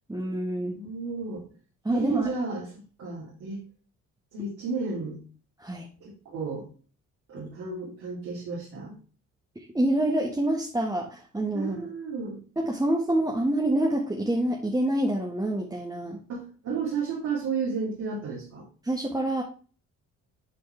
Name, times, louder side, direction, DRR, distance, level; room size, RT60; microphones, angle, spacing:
voice 1, 0.1-0.8 1.8-2.3 5.6-5.9 9.5-11.9 12.6-16.2 18.8-19.4, right 1 dB, 10° right, -1 dB, 1.5 m, -27 dB
voice 2, 0.7-1.4 1.9-2.7 3.0-3.6 4.3-5.2 6.0-6.6 7.3-9.0 11.5-12.4 16.3-18.6, right 4 dB, 80° right, -6 dB, 3.2 m, -32 dB
11.5 x 4.2 x 3.3 m, 0.38 s
cardioid pair, 90°, 30 cm